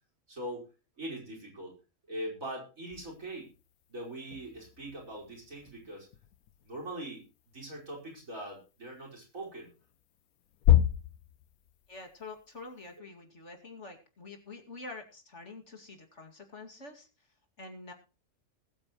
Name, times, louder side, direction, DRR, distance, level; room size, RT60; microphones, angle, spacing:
voice 1, 0.3-0.7 1.0-1.7 2.1-3.5 3.9-6.1 6.7-7.2 7.5-9.7, right 1 dB, 65° right, -1 dB, 5.5 m, -41 dB
sound 1, 2.9-13.0, left 12 dB, 80° left, 1.2 m, -33 dB
voice 2, 11.9-17.3 17.6-17.9, left 3 dB, 55° left, 4 dB, 2.7 m, -47 dB
20.5 x 9.0 x 3.1 m, 0.32 s
omnidirectional pair, 1.5 m